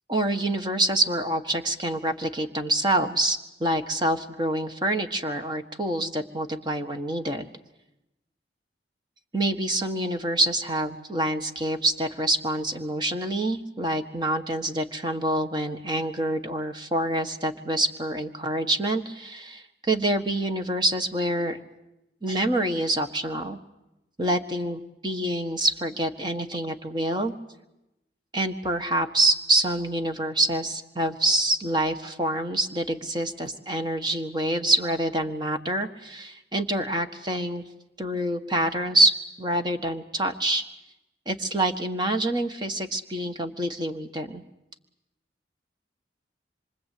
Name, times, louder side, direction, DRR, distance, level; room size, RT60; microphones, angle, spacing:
voice 1, 0.1-7.5 9.3-21.6 22.2-23.6 24.2-27.3 28.3-37.6 38.0-40.6 41.2-44.4, right 1 dB, 25° right, 6 dB, 1.6 m, -26 dB
26.0 x 24.0 x 8.6 m, 0.91 s
head